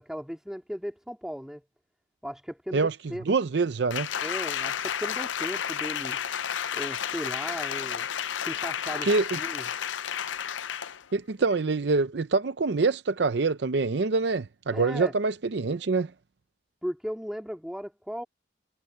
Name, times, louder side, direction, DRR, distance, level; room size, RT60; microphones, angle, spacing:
voice 1, 0.0-1.6 2.2-3.2 4.2-6.2 6.7-8.1 8.4-9.1 9.3-9.6 14.7-15.1 16.8-18.2, equal, 5° right, 2.7 m, -36 dB
voice 2, 3.3-4.1 9.0-9.4 11.1-16.1, right 4 dB, 65° right, 0.5 m, -25 dB
Applause, 3.9-11.0 11.5-11.6, left 8 dB, 85° left, 0.6 m, -32 dB
head